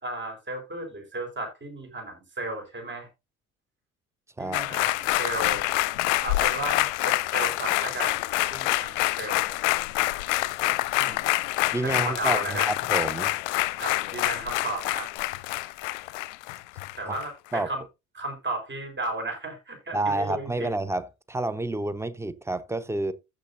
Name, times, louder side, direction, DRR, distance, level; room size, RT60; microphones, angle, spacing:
voice 1, 0.0-3.1 4.4-5.6 6.2-9.5 11.0-11.3 11.8-12.7 13.8-15.1 17.0-17.8 18.2-20.7, right 2 dB, 25° right, 4.7 m, -34 dB
voice 2, 4.4-4.8 11.7-13.3 17.1-17.2 17.5-17.7 19.9-23.1, right 2 dB, 5° right, 0.8 m, -29 dB
sound 1, 4.5-17.2 17.6-17.7, left 18 dB, 60° left, 0.6 m, -26 dB
15.0 x 6.6 x 2.7 m
figure-of-eight pair, 60°, 41 cm